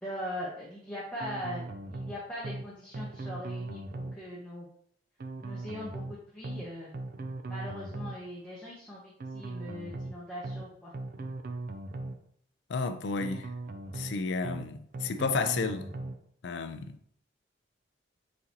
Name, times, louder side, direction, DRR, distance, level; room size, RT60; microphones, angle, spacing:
voice 1, 0.0-1.6 1.9-4.7 5.4-6.9 7.5-10.9, equal, 5° left, 0.8 m, -40 dB
sound 1, 1.2-2.1 2.4-2.7 2.9-4.2 5.2-6.1 6.4-6.7 6.9-8.2 9.2-10.1 10.4-10.7 10.9-12.2 13.2-14.1 14.4-14.7 14.9-16.2, right 2 dB, 55° right, 0.4 m, -39 dB
voice 2, 12.7-13.5 13.9-15.9 16.4-17.0, left 4 dB, 70° left, 0.4 m, -32 dB
4.0 x 3.7 x 2.9 m
head